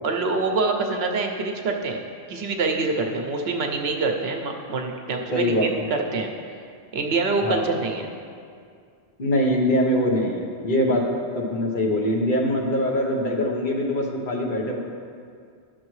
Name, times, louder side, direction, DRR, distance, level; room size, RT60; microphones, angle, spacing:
voice 1, 0.0-2.0 2.3-6.3 6.9-8.1, right 3 dB, 70° right, 3 dB, 0.9 m, -25 dB
voice 2, 5.3-5.7 7.4-7.7 9.2-11.0 11.3-14.8, left 1 dB, 50° left, -1 dB, 1.2 m, -23 dB
11.0 x 6.5 x 3.1 m, 2.3 s
omnidirectional pair, 1.1 m